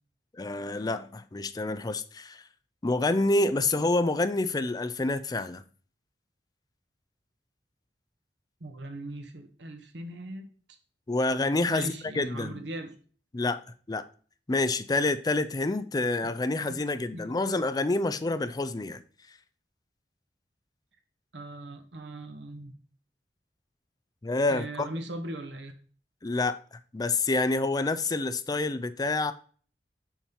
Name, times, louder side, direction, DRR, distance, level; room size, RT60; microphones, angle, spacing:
voice 1, 0.4-2.4 2.8-5.6 11.1-12.6 13.3-13.6 13.9-14.0 14.5-19.0 24.2-24.9 26.2-29.3, left 2 dB, 20° left, 0.5 m, -28 dB
voice 2, 8.6-10.5 11.7-12.9 16.7-16.8 17.1-17.6 21.3-22.8 24.5-25.7, right 1 dB, 85° right, 1.1 m, -39 dB
7.1 x 5.4 x 2.9 m
head